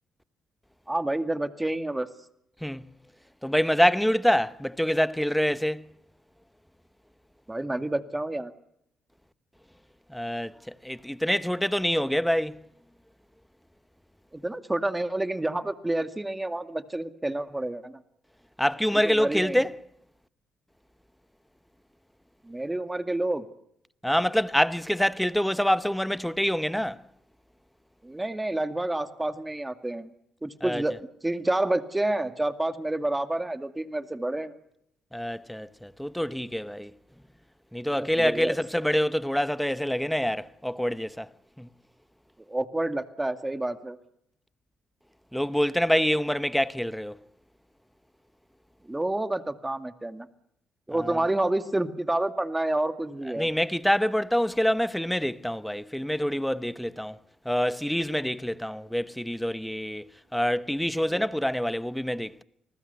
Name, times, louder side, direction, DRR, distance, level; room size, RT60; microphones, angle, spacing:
voice 1, 0.9-2.1 7.5-8.5 14.3-18.0 18.9-19.6 22.4-23.5 28.0-30.1 30.4-34.6 37.9-38.6 42.5-44.0 48.8-50.3 50.9-53.5 61.1-61.3, right 1 dB, 15° right, 2.1 m, -29 dB
voice 2, 3.4-5.8 10.1-12.6 18.6-19.7 24.0-27.0 30.6-30.8 35.1-36.9 37.7-41.3 41.6-41.7 45.3-47.2 50.9-51.2 53.4-57.2 57.4-62.4, equal, 5° left, 1.0 m, -26 dB
29.5 x 20.0 x 8.3 m
cardioid pair, 90°, 0 cm